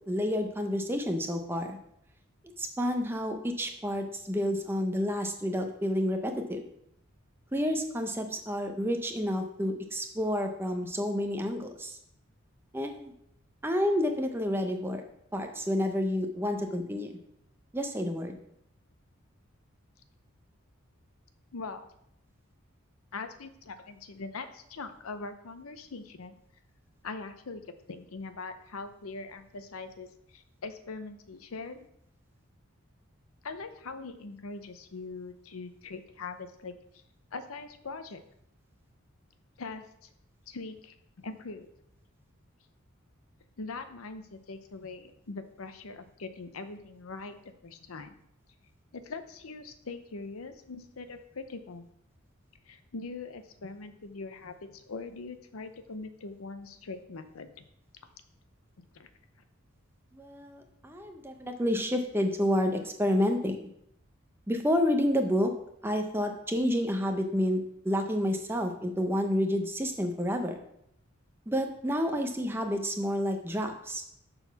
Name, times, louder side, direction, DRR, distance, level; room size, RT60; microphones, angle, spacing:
voice 1, 0.1-1.8 2.6-6.7 7.5-12.0 12.7-13.1 13.6-15.0 15.3-17.2 17.7-18.4 60.1-63.6 64.5-65.5 65.8-70.6 71.5-74.0, equal, 10° right, 5 dB, 0.7 m, -29 dB
voice 2, 21.5-21.9 23.1-26.4 27.0-27.6 27.9-31.9 33.4-36.7 37.3-38.2 39.6-40.1 40.5-41.7 43.6-47.4 47.6-48.1 48.9-51.8 52.7-57.6 58.8-59.1, left 3 dB, 85° left, 9 dB, 0.7 m, -42 dB
6.8 x 4.0 x 5.8 m, 0.74 s
head